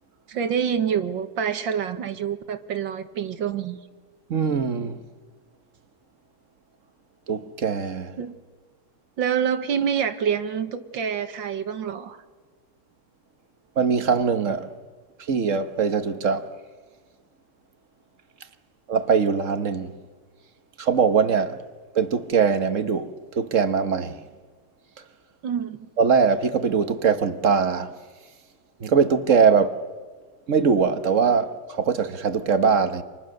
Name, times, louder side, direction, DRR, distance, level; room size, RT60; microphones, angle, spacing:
voice 1, 0.3-3.8 8.2-8.4 9.2-12.2 25.4-25.9, right 8 dB, 65° right, 1.9 m, -26 dB
voice 2, 4.3-5.0 7.3-8.2 13.8-14.7 15.3-16.5 18.9-19.9 20.8-21.6 21.9-24.2 26.0-27.9 28.8-29.8 30.5-33.0, right 6 dB, 45° right, 1.2 m, -22 dB
30.0 x 27.0 x 6.6 m
omnidirectional pair, 2.4 m